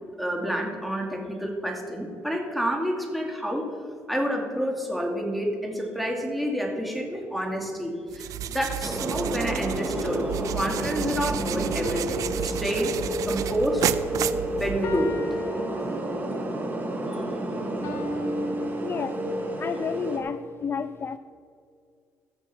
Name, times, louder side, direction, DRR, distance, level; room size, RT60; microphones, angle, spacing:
voice 1, 0.2-3.7 4.1-8.3 8.5-13.0 13.3-13.9 14.5-15.2, equal, ahead, 1 dB, 2.5 m, -28 dB
sound 1, 8.1-15.1, right 10 dB, 70° right, 0.5 m, -32 dB
sound 2, 8.8-20.2, right 1 dB, 30° right, 2.9 m, -31 dB
sound 3, 9.4-10.8 11.8-14.3 14.8-16.4 17.8-19.5, left 1 dB, 70° left, 2.6 m, -37 dB
voice 2, 18.8-19.2 19.6-21.2, left 6 dB, 40° left, 13 dB, 0.4 m, -31 dB
16.5 x 7.0 x 5.7 m, 2.2 s
cardioid pair, 90°, 6 cm